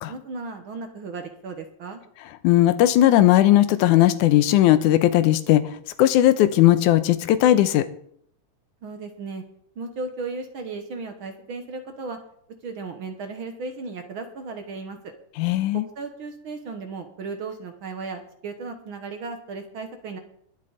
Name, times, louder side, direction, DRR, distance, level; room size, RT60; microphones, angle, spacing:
voice 1, 0.1-2.0 8.8-9.4 9.8-12.2 12.6-15.1 15.7-20.2, right 4 dB, 60° right, 6 dB, 1.4 m, -35 dB
voice 2, 2.4-5.6 6.0-7.9 15.4-15.9, left 13 dB, 85° left, 11 dB, 2.2 m, -17 dB
22.0 x 7.5 x 4.0 m, 0.66 s
omnidirectional pair, 3.5 m